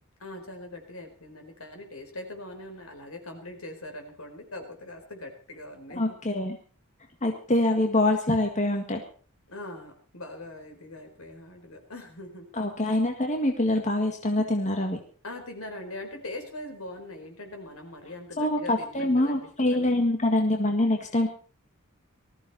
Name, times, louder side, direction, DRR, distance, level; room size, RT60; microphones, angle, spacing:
voice 1, 0.2-6.2 9.5-12.5 15.2-20.0, left 2 dB, 75° left, 5 dB, 4.5 m, -41 dB
voice 2, 6.0-6.6 7.2-9.0 12.6-15.0 18.4-21.3, left 1 dB, 35° left, 3 dB, 1.9 m, -25 dB
19.5 x 14.5 x 4.3 m, 0.40 s
head